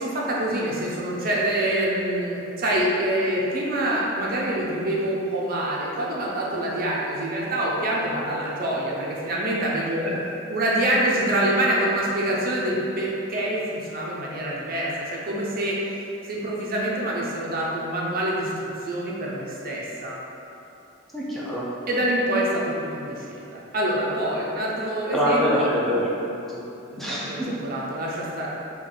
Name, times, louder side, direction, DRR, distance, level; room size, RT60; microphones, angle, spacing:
voice 1, 0.0-10.0 10.5-15.8 16.3-20.1 21.9-25.7 26.9-28.5, right 1 dB, 45° right, -4 dB, 0.5 m, -26 dB
voice 2, 21.1-21.6 25.1-26.0 26.3-26.6 27.0-27.5, equal, ahead, -8 dB, 0.5 m, -25 dB
3.3 x 2.2 x 3.8 m, 2.8 s
head